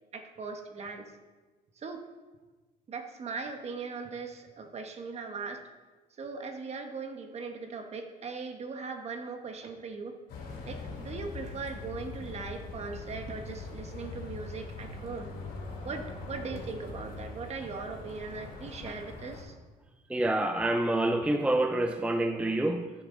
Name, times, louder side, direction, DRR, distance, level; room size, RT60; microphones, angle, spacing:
voice 1, 0.1-1.1 1.8-2.0 2.9-5.7 6.2-10.2 10.6-15.3 15.8-19.5, right 4 dB, 40° right, 5 dB, 1.2 m, -39 dB
sound 1, 10.3-19.4, left 3 dB, 85° left, 3.3 m, -42 dB
voice 2, 20.1-22.9, right 1 dB, 5° right, 6 dB, 0.4 m, -27 dB
14.0 x 6.5 x 3.8 m, 1.3 s
cardioid pair, 110°, 17 cm